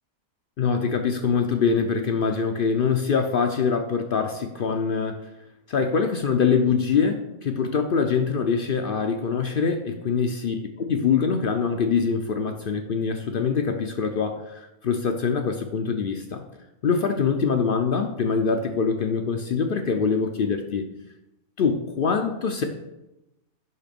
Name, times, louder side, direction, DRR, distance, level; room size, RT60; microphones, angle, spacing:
voice 1, 0.6-5.3 5.7-10.6 10.9-16.5 16.8-20.9 21.6-22.6, left 5 dB, 70° left, 5 dB, 0.5 m, -24 dB
7.0 x 5.8 x 5.2 m, 0.92 s
omnidirectional pair, 1.7 m